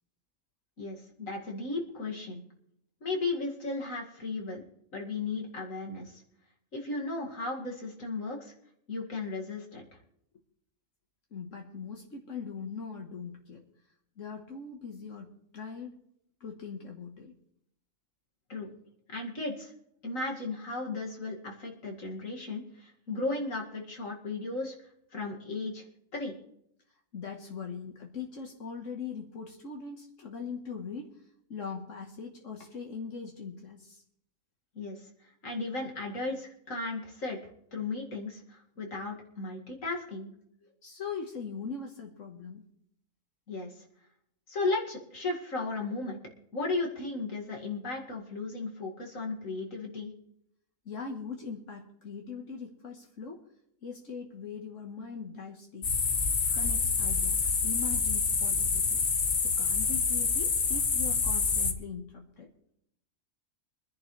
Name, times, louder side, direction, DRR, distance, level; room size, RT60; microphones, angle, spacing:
voice 1, 0.8-2.4 3.0-4.6 4.9-6.2 6.7-8.5 8.9-9.8 18.5-18.7 19.1-19.7 20.0-24.7 25.1-25.8 26.1-26.3 34.8-35.0 35.4-37.4 37.7-40.3 43.5-43.7 44.5-46.2 46.5-50.1, left 3 dB, 90° left, 0 dB, 2.7 m, -35 dB
voice 2, 11.3-13.6 14.2-16.0 16.4-17.4 27.1-31.2 31.5-34.0 40.8-42.6 50.9-53.4 53.8-55.9 56.5-59.0 59.4-62.5, left 5 dB, 70° left, 2 dB, 1.7 m, -41 dB
sound 1, 55.8-61.7, left 5 dB, 50° left, 1.3 m, -27 dB
24.0 x 10.5 x 3.3 m, 0.73 s
omnidirectional pair, 1.3 m